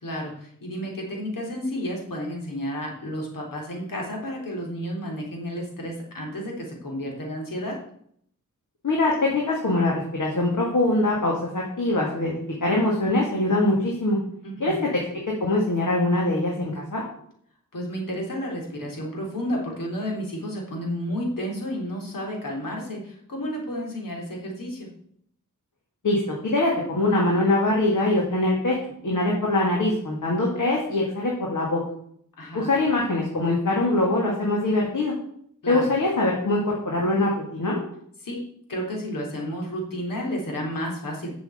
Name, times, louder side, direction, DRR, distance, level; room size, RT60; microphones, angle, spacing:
voice 1, 0.0-7.8 14.4-14.8 17.7-24.9 32.4-32.7 35.6-36.0 38.2-38.4 38.7-41.3, equal, 90° left, -1 dB, 3.5 m, -31 dB
voice 2, 8.8-12.3 12.6-14.2 14.6-14.9 15.4-17.0 26.0-26.2 26.5-28.7 29.0-31.8 32.5-35.1 35.7-37.8, left 2 dB, 70° left, -2 dB, 2.6 m, -23 dB
7.6 x 6.9 x 8.3 m, 0.66 s
wide cardioid pair, 100°, 32 cm